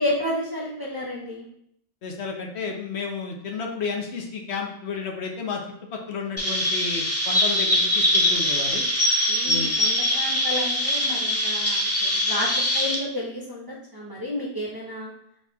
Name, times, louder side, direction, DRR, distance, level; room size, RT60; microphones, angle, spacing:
voice 1, 0.0-1.5 9.3-12.5 12.7-15.1, left 1 dB, 20° right, -5 dB, 0.7 m, -31 dB
voice 2, 2.0-5.6 5.9-8.8 9.4-9.8, left 5 dB, 70° left, 1 dB, 1.0 m, -32 dB
Chirp tweet, 6.4-12.9, left 1 dB, 20° left, 0.5 m, -23 dB
4.1 x 3.0 x 3.4 m, 0.73 s
omnidirectional pair, 1.2 m